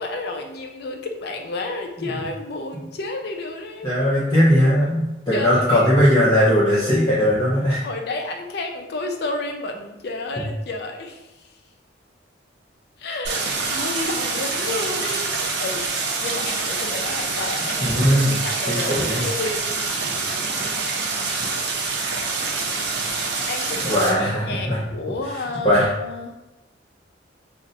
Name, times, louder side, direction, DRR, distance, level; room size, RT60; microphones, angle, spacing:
voice 1, 0.0-3.9 5.3-5.9 7.8-11.5 13.0-19.9 23.4-26.3, left 2 dB, 55° left, 3 dB, 0.4 m, -31 dB
voice 2, 3.8-7.8 17.8-18.3 18.7-19.2 20.0-20.1 23.8-24.8 25.6-25.9, equal, 25° left, -12 dB, 0.7 m, -19 dB
Stream, 13.2-24.1, right 4 dB, 60° right, 0.5 m, -26 dB
2.6 x 2.1 x 3.9 m, 0.99 s
head